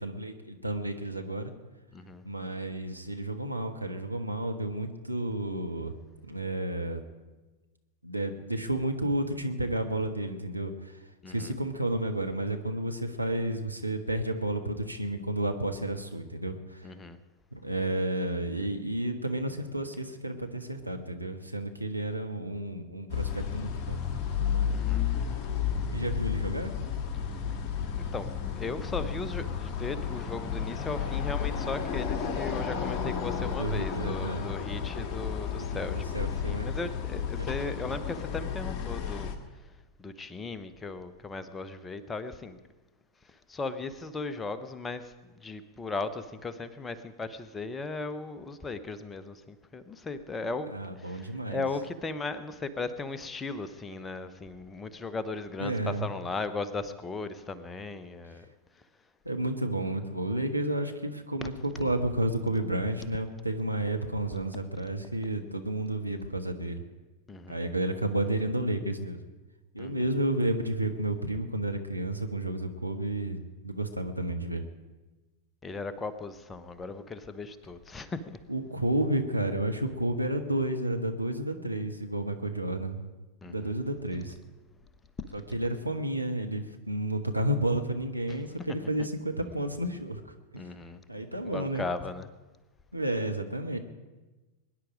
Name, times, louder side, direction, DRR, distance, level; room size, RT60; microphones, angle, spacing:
voice 1, 0.0-1.5 2.2-5.9 6.3-7.0 8.0-11.0 11.3-16.9 17.5-24.0 24.5-24.8 25.9-26.7 33.5-34.5 35.5-36.7 37.4-37.7 50.4-51.6 55.6-56.1 59.2-66.8 67.5-69.2 69.7-73.4 73.6-74.6 78.5-83.0 83.5-84.4 85.3-90.2 90.5-90.7 91.1-91.9 92.9-93.8, right 1 dB, 90° right, 4 dB, 1.3 m, -31 dB
voice 2, 1.9-2.2 11.2-11.5 16.8-17.2 24.7-25.1 27.9-39.3 40.0-42.6 43.5-45.1 45.4-58.4 61.4-61.5 67.3-67.7 69.8-70.0 75.6-78.4 83.4-83.7 90.6-91.0 91.4-92.3, left 3 dB, 15° left, 11 dB, 0.9 m, -37 dB
sound 1, 23.1-39.4, left 7 dB, 35° left, 1.8 m, -32 dB
22.0 x 10.5 x 5.1 m, 1.2 s
figure-of-eight pair, 90°, 0 cm